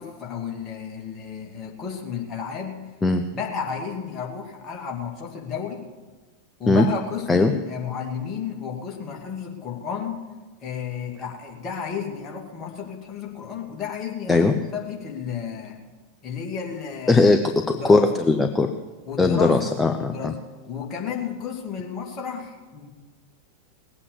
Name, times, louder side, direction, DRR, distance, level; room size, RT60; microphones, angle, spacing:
voice 1, 0.0-2.9 3.3-5.8 6.6-10.2 10.6-15.8 16.2-18.1 19.1-19.7 20.0-20.4 20.7-22.9, left 7 dB, 30° left, 0 dB, 2.5 m, -32 dB
voice 2, 17.1-18.7 19.2-20.3, left 3 dB, 10° left, 6 dB, 0.8 m, -19 dB
19.5 x 8.5 x 6.9 m, 1.3 s
figure-of-eight pair, 90°, 0 cm